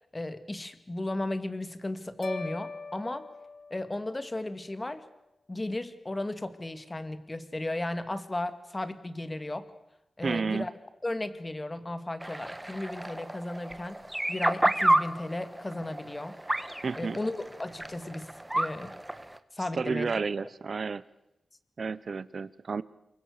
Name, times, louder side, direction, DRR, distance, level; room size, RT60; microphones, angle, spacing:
voice 1, 0.1-3.3 3.7-5.0 5.5-9.7 10.2-10.7 11.0-14.0 14.3-16.4 16.9-18.3 18.6-18.9 19.5-20.1, left 1 dB, 25° left, 11 dB, 2.2 m, -35 dB
sound 1, 2.2-4.5, left 4 dB, 90° left, 2.0 m, -42 dB
voice 2, 10.2-10.7 16.8-17.2 19.7-21.0 21.8-22.8, right 4 dB, 60° right, 17 dB, 1.0 m, -31 dB
sound 2, 12.2-19.4, right 1 dB, 10° right, 1.4 m, -31 dB
28.5 x 23.5 x 6.8 m, 0.89 s
wide cardioid pair, 95°, 0 cm